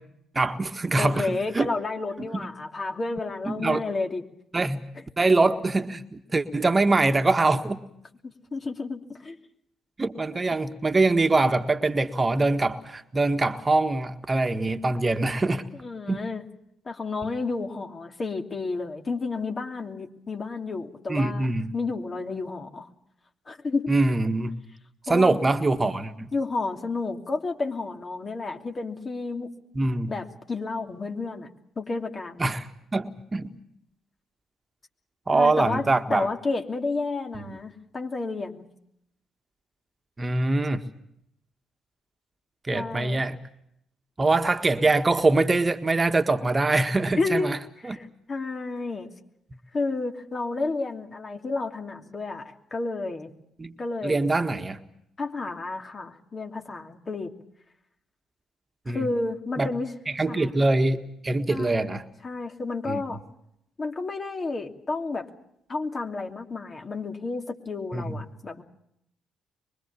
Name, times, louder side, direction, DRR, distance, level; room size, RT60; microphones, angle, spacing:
voice 1, 0.3-1.7 3.4-3.8 4.5-4.8 5.2-7.8 10.0-15.6 16.1-16.2 21.1-21.7 23.9-24.5 25.1-26.3 29.7-30.1 32.4-32.7 32.9-33.5 35.3-36.3 37.3-37.6 40.2-40.8 42.7-43.4 44.2-47.6 47.8-48.0 53.6-53.7 54.0-54.8 58.9-59.1 59.6-59.7 60.1-61.0 61.2-62.0 62.9-63.0 67.9-68.1, right 2 dB, 30° right, 8 dB, 1.7 m, -23 dB
voice 2, 0.9-4.2 8.5-9.4 15.7-16.5 16.8-21.5 21.7-22.9 23.5-23.9 25.1-25.4 26.3-29.5 30.1-31.5 31.8-32.5 35.3-38.6 42.7-43.2 47.2-47.5 47.8-49.1 49.7-53.3 53.8-54.2 55.2-57.3 58.9-59.9 60.3-60.6 61.5-61.9 62.2-63.2 63.8-65.3 65.7-68.6, left 3 dB, 35° left, 3 dB, 3.0 m, -31 dB
24.0 x 23.0 x 7.1 m, 0.75 s
hypercardioid pair, 45°, 0 cm